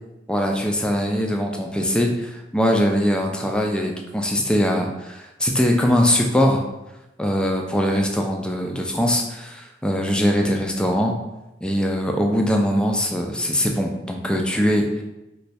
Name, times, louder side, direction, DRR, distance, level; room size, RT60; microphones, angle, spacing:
voice 1, 0.3-6.6 7.2-11.2 11.6-15.0, equal, 5° left, 2 dB, 0.4 m, -21 dB
3.2 x 2.3 x 4.1 m, 0.95 s
head